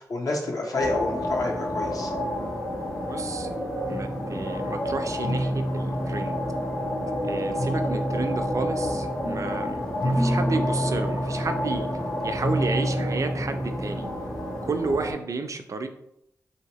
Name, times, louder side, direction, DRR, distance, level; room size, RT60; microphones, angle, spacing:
voice 1, 0.0-2.1, left 2 dB, 60° left, 0 dB, 0.8 m, -29 dB
sound 1, 0.7-15.1, left 1 dB, 80° left, 1.1 m, -30 dB
voice 2, 3.0-3.5 3.9-6.4 7.3-11.9 12.2-14.1 14.6-15.9, right 3 dB, 50° right, 7 dB, 0.4 m, -31 dB
sound 2, 3.8-14.7, equal, 5° left, 0.6 m, -30 dB
3.2 x 2.8 x 2.9 m, 0.78 s
cardioid pair, 50°, 7 cm